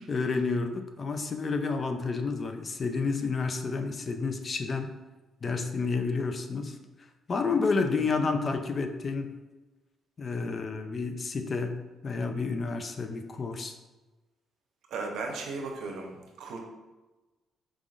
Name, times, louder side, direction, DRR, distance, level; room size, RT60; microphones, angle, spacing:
voice 1, 0.0-4.9 5.4-6.8 7.3-9.3 10.2-11.8 12.0-13.8, left 4 dB, 40° left, 6 dB, 0.4 m, -30 dB
voice 2, 14.9-16.6, right 3 dB, 75° right, 2 dB, 0.7 m, -36 dB
4.8 x 3.7 x 2.4 m, 1.2 s
cardioid pair, 90°, 0 cm